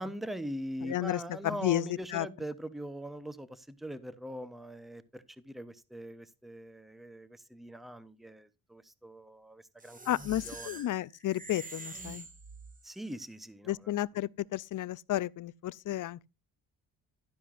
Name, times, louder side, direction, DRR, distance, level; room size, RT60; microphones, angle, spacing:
voice 1, 0.0-10.0 10.4-10.8 12.8-13.9, equal, ahead, 0.8 m, -42 dB
voice 2, 0.8-2.3 10.1-12.3 13.7-16.3, left 14 dB, 60° left, 0.5 m, -32 dB
sound 1, 9.8-13.1, right 2 dB, 20° right, 1.8 m, -46 dB
12.0 x 11.0 x 2.5 m
cardioid pair, 120°, 36 cm